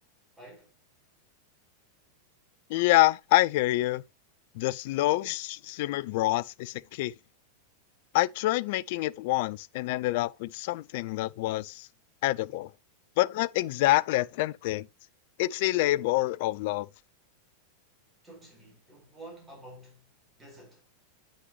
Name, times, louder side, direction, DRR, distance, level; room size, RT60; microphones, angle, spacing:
voice 1, 0.4-0.7 18.2-20.9, right 1 dB, 15° right, 4.6 m, -50 dB
voice 2, 2.7-4.0 4.5-7.1 8.1-11.9 12.2-12.7 13.2-14.9 15.4-16.9, left 18 dB, 50° left, 0.3 m, -27 dB
9.1 x 6.3 x 3.1 m
figure-of-eight pair, 90°, 0 cm